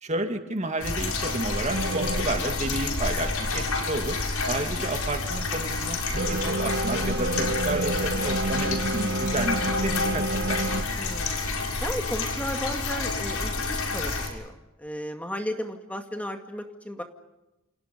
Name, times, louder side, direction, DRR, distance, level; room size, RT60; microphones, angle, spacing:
voice 1, 0.0-4.2 4.4-10.6, right 2 dB, 35° right, 6 dB, 2.4 m, -31 dB
sound 1, 0.8-14.3, left 3 dB, 90° left, 6.7 m, -29 dB
sound 2, 1.7-2.7 6.1-10.8, right 2 dB, 50° right, 1.2 m, -29 dB
voice 2, 11.0-11.4 11.8-17.0, equal, 5° left, 4 dB, 2.2 m, -34 dB
29.0 x 29.0 x 5.4 m, 0.95 s
head